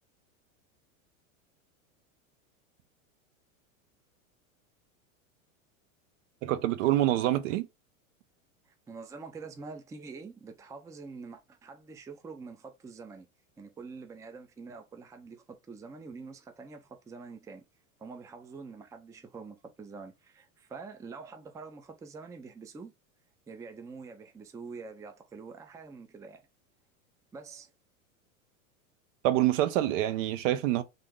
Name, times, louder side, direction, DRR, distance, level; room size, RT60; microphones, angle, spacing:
voice 1, 6.4-7.7 29.2-30.8, right 13 dB, 65° right, 0.7 m, -26 dB
voice 2, 8.7-13.3 13.6-17.6 18.0-22.9 23.5-26.4 27.3-27.7, right 4 dB, 10° right, 0.4 m, -46 dB
3.4 x 2.6 x 3.5 m
hypercardioid pair, 110°, 41 cm